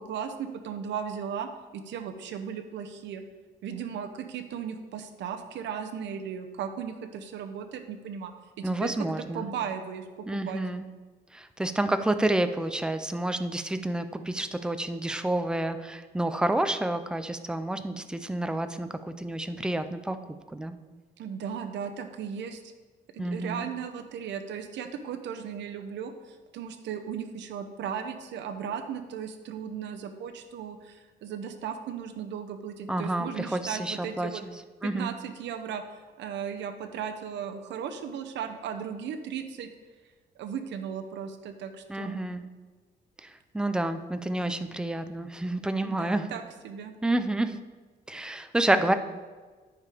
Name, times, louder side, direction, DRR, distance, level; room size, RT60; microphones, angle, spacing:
voice 1, 0.0-3.2 3.6-8.3 8.6-8.9 9.3-10.1 10.3-10.6 21.2-22.6 23.1-34.4 34.8-35.8 36.2-39.7 40.4-42.2 45.8-46.9, right 7 dB, 85° right, 7 dB, 0.7 m, -36 dB
voice 2, 8.6-9.5 10.3-10.9 11.3-20.2 20.5-20.8 23.2-23.6 32.9-34.5 34.8-35.1 41.9-42.4 43.2-46.3 47.0-47.6 48.1-48.9, right 1 dB, 5° right, 9 dB, 0.4 m, -29 dB
9.7 x 5.0 x 4.9 m, 1.4 s
cardioid pair, 145°, 18 cm